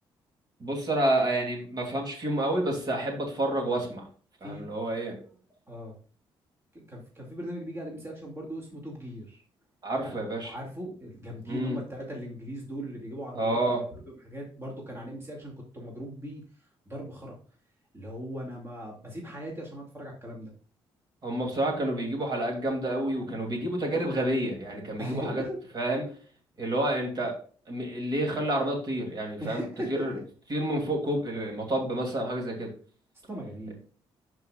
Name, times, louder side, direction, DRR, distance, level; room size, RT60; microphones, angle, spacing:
voice 1, 0.6-4.1 4.4-5.2 9.8-10.5 11.5-11.8 13.3-13.8 21.2-25.4 25.7-26.1 26.6-27.3 27.7-30.1 30.5-32.7, right 1 dB, 45° right, 1 dB, 2.8 m, -29 dB
voice 2, 4.4-4.8 5.7-6.0 6.7-9.4 10.0-10.2 10.4-13.7 14.1-17.4 17.9-20.5 25.0-25.6 29.4-30.2 33.3-33.8, equal, 25° right, -2 dB, 2.4 m, -39 dB
11.5 x 4.9 x 2.4 m, 0.42 s
cardioid pair, 85°, 10 cm